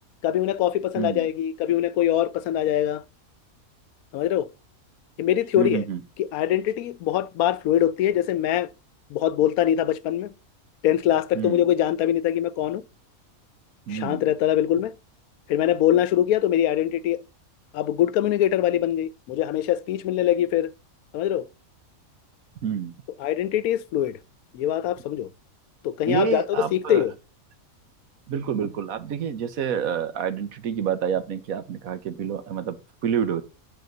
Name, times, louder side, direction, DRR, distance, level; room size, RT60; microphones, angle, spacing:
voice 1, 0.2-3.0 4.1-4.5 5.2-5.8 6.2-8.7 9.1-10.3 10.8-12.8 13.9-14.9 15.5-17.2 17.7-20.7 21.1-21.5 23.2-24.2 24.5-25.3 25.8-27.1, left 11 dB, 85° left, 1.1 m, -23 dB
voice 2, 1.0-1.3 5.6-6.0 11.3-11.7 13.9-14.2 22.6-22.9 26.1-27.1 28.3-33.4, right 8 dB, 75° right, 1.3 m, -28 dB
9.4 x 4.2 x 6.5 m
omnidirectional pair, 1.5 m